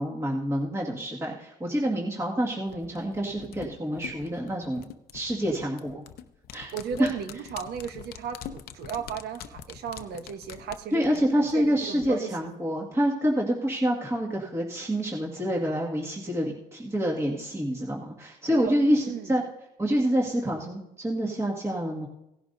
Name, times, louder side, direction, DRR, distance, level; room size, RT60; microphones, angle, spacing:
voice 1, 0.0-4.9 5.1-6.0 6.5-6.7 7.0-7.1 10.9-19.4 19.8-22.1, equal, 15° right, -3 dB, 1.9 m, -27 dB
sound 1, 2.7-12.1 12.4-12.5, left 9 dB, 65° left, 0.8 m, -44 dB
voice 2, 6.7-11.1 11.5-12.5 18.5-18.7 19.0-19.3, right 7 dB, 70° right, 7 dB, 1.1 m, -35 dB
17.5 x 11.0 x 2.6 m, 0.86 s
cardioid pair, 110°, 17 cm